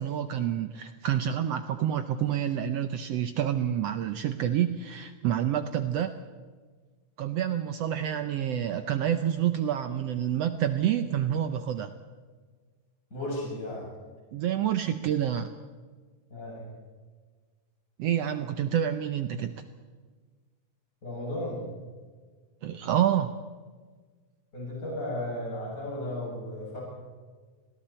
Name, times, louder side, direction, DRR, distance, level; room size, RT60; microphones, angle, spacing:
voice 1, 0.0-6.1 7.2-11.9 14.3-15.5 18.0-19.6 22.6-23.4, right 10 dB, 90° right, 9 dB, 1.4 m, -28 dB
voice 2, 13.1-13.9 16.3-16.7 21.0-21.6 24.5-26.8, left 1 dB, 20° left, -5 dB, 7.8 m, -34 dB
29.5 x 20.5 x 4.4 m, 1.5 s
omnidirectional pair, 3.9 m